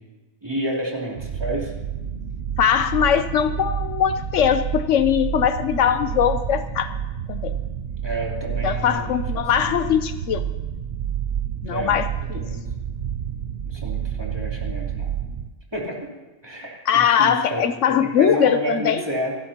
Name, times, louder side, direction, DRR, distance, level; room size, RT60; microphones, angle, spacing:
voice 1, 0.4-1.7 8.0-10.0 11.6-12.0 12.3-12.7 13.7-15.1 15.7-16.1 16.4-19.4, right 1 dB, 20° right, -4 dB, 3.2 m, -30 dB
sound 1, 1.1-15.5, right 9 dB, 55° right, 0.8 m, -29 dB
voice 2, 2.6-6.9 7.3-7.5 8.6-10.4 11.6-12.4 16.9-19.0, left 9 dB, 75° left, 11 dB, 1.0 m, -21 dB
28.0 x 11.5 x 2.9 m, 1.2 s
omnidirectional pair, 1.3 m